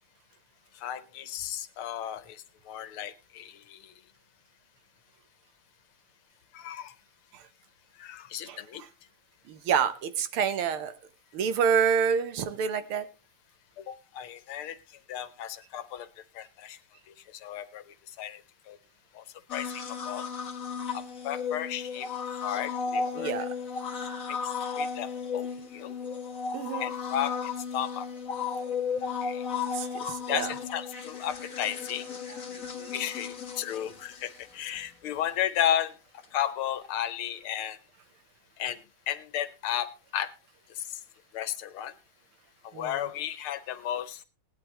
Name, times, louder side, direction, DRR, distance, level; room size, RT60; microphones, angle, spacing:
voice 1, 0.7-3.9 6.5-6.9 8.0-8.8 13.8-14.8 15.1-16.1 16.3-16.8 17.3-18.4 18.7-18.8 19.1-19.2 19.5-20.2 20.9-22.1 22.4-23.3 24.3-24.4 24.8-26.0 26.8-28.1 29.2-29.4 30.3-32.1 32.9-35.9 36.3-37.8 38.6-38.8 39.1-40.3 40.7-41.0 41.3-41.9 42.6-44.2, left 10 dB, 85° left, 13 dB, 1.9 m, -34 dB
voice 2, 9.5-10.9 11.3-13.1 23.2-23.5 26.5-26.9 29.7-30.5 32.8-32.9 42.7-42.9, right 7 dB, 85° right, 12 dB, 1.9 m, -27 dB
sound 1, 19.5-34.8 36.2-36.3, left 6 dB, 40° left, 2.0 m, -35 dB
18.0 x 11.0 x 3.1 m, 0.29 s
omnidirectional pair, 2.3 m